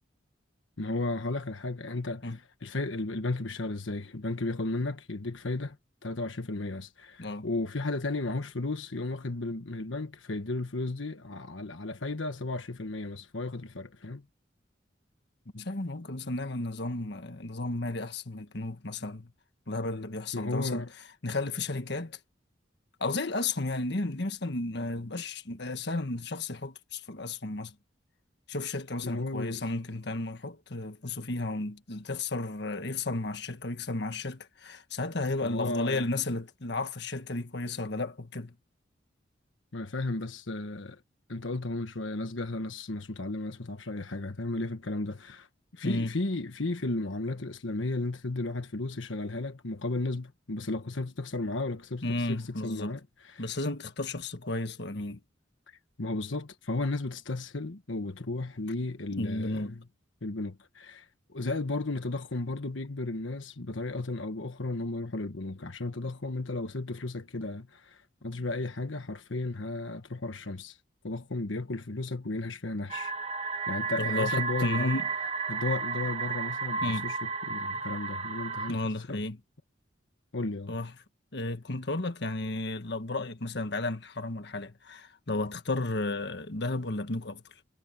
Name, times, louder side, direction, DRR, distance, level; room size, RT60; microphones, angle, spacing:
voice 1, 0.8-5.8 6.0-14.2 20.3-20.9 29.0-29.6 35.4-36.0 39.7-41.0 41.3-45.5 45.7-53.5 56.0-59.8 60.2-70.8 71.0-73.1 73.7-75.0 75.5-79.2 80.3-80.7, left 2 dB, 90° left, 1.3 m, -34 dB
voice 2, 15.5-19.3 19.7-20.9 21.2-22.2 23.0-27.7 28.5-38.5 45.8-46.1 52.0-53.0 53.4-55.2 59.1-59.8 74.0-75.1 76.8-77.1 78.7-79.4 80.7-80.9 81.3-87.4, left 2 dB, 65° left, 1.6 m, -33 dB
sound 1, 72.9-78.7, right 5 dB, 35° right, 1.5 m, -33 dB
head